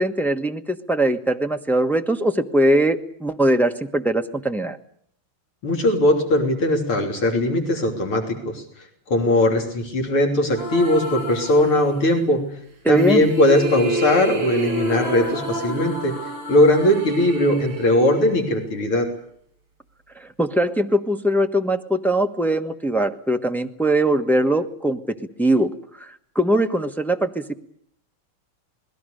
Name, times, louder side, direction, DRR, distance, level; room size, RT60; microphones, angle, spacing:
voice 1, 0.0-4.8 12.8-13.3 20.1-27.5, right 1 dB, ahead, 5 dB, 0.8 m, -21 dB
voice 2, 5.6-12.5 12.9-16.2 16.5-19.1, left 1 dB, 85° left, 4 dB, 4.1 m, -19 dB
sound 1, 10.5-12.2 13.0-19.1, right 1 dB, 70° right, 5.4 m, -29 dB
28.0 x 20.5 x 6.7 m, 0.66 s
omnidirectional pair, 2.3 m